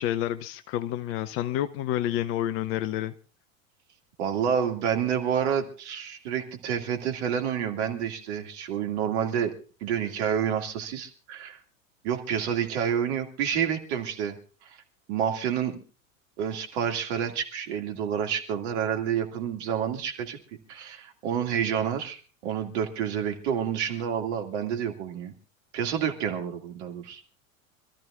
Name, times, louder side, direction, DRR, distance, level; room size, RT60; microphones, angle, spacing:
voice 1, 0.0-3.1, left 12 dB, 35° left, 13 dB, 0.6 m, -29 dB
voice 2, 4.2-9.5 9.8-11.6 12.0-14.4 15.1-15.8 16.4-20.4 20.7-25.3 25.7-27.2, right 8 dB, 55° right, 5 dB, 2.3 m, -29 dB
26.0 x 13.5 x 2.5 m, 0.37 s
figure-of-eight pair, 80°, 41 cm